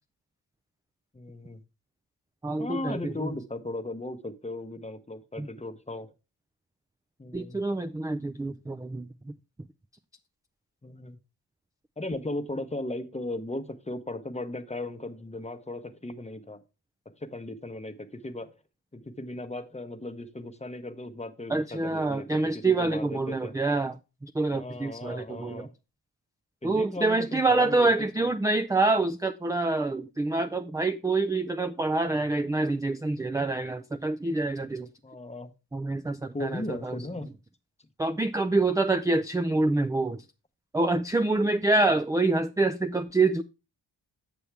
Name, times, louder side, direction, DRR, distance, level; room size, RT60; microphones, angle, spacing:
voice 1, 1.1-1.6 2.6-6.1 7.2-7.6 10.8-11.2 12.0-16.6 17.2-18.5 18.9-23.5 24.5-25.7 26.6-27.9 28.2-28.3 35.0-35.5 36.3-37.3, left 2 dB, 15° left, 0.9 m, -37 dB
voice 2, 2.4-3.1 5.4-5.5 7.3-9.3 21.5-23.9 24.2-25.7 26.6-34.9 35.7-37.0 38.0-40.2 40.7-43.4, right 2 dB, 10° right, 0.3 m, -26 dB
7.0 x 7.0 x 3.3 m
cardioid pair, 65°, 42 cm